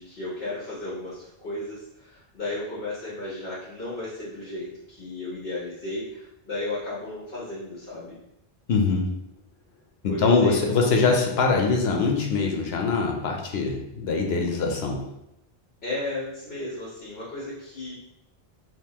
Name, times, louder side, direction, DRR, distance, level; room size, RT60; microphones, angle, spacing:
voice 1, 0.0-8.1 10.1-11.2 15.8-17.9, left 2 dB, 65° left, -9 dB, 1.2 m, -34 dB
voice 2, 8.7-9.1 10.0-15.0, left 4 dB, 90° left, 2 dB, 0.9 m, -23 dB
3.6 x 2.7 x 2.9 m, 0.83 s
omnidirectional pair, 1.0 m